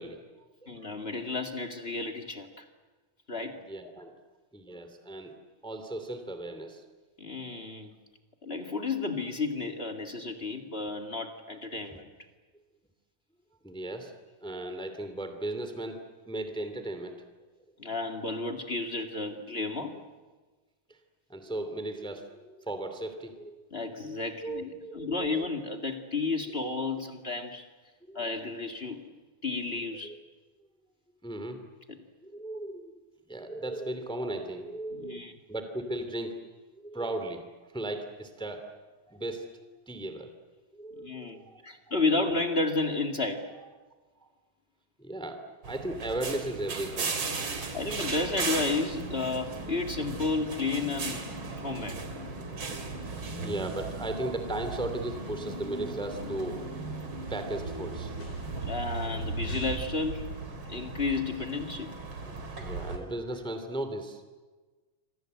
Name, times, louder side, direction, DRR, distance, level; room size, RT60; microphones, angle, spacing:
voice 1, 0.0-0.5 0.8-0.9 3.7-4.1 4.5-5.3 5.6-6.8 13.6-14.1 14.4-16.0 16.3-17.1 20.9-21.0 21.3-23.6 24.4-25.5 28.0-28.2 29.9-30.2 31.2-31.6 32.2-32.9 33.3-36.3 36.7-37.5 37.7-38.7 39.1-40.3 40.7-42.0 45.0-48.0 52.5-52.6 53.3-58.2 58.4-58.7 62.5-64.3, right 1 dB, ahead, 7 dB, 2.2 m, -37 dB
voice 2, 0.7-2.7 3.3-3.9 7.2-7.9 8.4-12.1 17.8-20.0 23.7-27.7 28.1-29.0 29.4-30.1 34.9-35.3 41.0-43.5 47.7-51.3 51.6-52.0 58.6-60.3 60.7-61.9, left 3 dB, 25° left, 8 dB, 1.8 m, -32 dB
sound 1, 45.6-63.0, right 3 dB, 45° right, 3.4 m, -37 dB
sound 2, 56.4-63.0, left 1 dB, 80° left, 5.6 m, -48 dB
28.5 x 25.0 x 8.0 m, 1.3 s
omnidirectional pair, 3.4 m